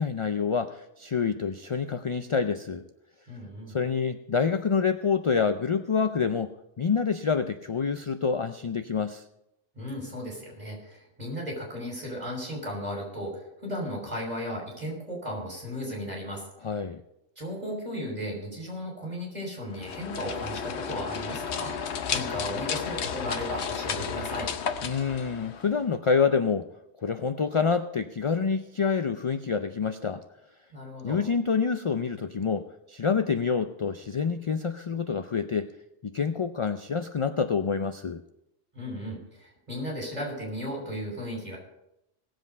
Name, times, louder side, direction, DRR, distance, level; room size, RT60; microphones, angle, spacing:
voice 1, 0.0-2.8 3.7-9.2 16.6-17.0 24.8-26.7 27.0-30.2 31.0-35.7 36.0-38.2, left 5 dB, 50° left, 9 dB, 0.4 m, -27 dB
voice 2, 3.3-3.8 9.8-16.4 17.4-24.5 30.7-31.2 38.7-41.6, equal, 35° right, -2 dB, 5.5 m, -35 dB
sound 1, 19.7-25.9, left 7 dB, 65° left, 1.0 m, -33 dB
17.5 x 7.8 x 5.4 m, 0.85 s
omnidirectional pair, 1.2 m